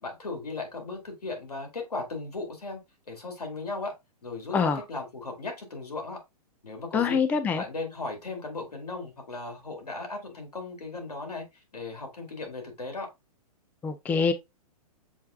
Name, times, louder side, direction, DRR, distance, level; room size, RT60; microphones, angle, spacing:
voice 1, 0.0-2.8 3.1-3.9 4.2-6.2 6.6-7.2 7.6-13.1, left 3 dB, 90° left, 2.1 m, -36 dB
voice 2, 4.5-4.8 6.9-7.6 13.8-14.3, left 5 dB, 10° left, 0.3 m, -25 dB
7.1 x 3.2 x 2.3 m
hypercardioid pair, 120°, 19 cm